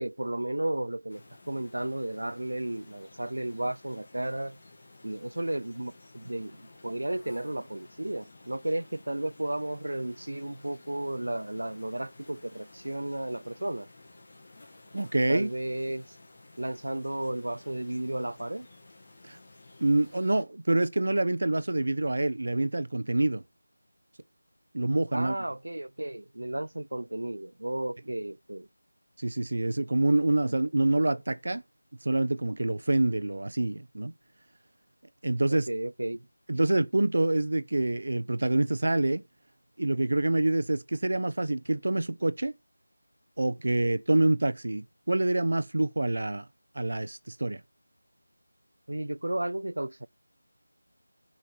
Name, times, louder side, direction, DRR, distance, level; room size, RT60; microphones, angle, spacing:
voice 1, 0.0-4.6 5.0-13.9 15.3-16.2 16.6-18.7 25.1-28.7 35.5-36.3 48.9-50.1, right 1 dB, 80° right, 0.5 m, -33 dB
sound 1, 1.1-20.4, left 2 dB, 20° left, 1.9 m, -54 dB
voice 2, 14.9-15.5 19.2-19.4 19.8-23.4 24.7-25.4 29.2-31.6 32.0-34.1 35.2-35.7 36.5-39.2 39.8-42.5 43.4-46.4 46.7-47.6, right 2 dB, 45° right, 0.9 m, -26 dB
15.0 x 5.6 x 4.5 m
figure-of-eight pair, 180°, 0 cm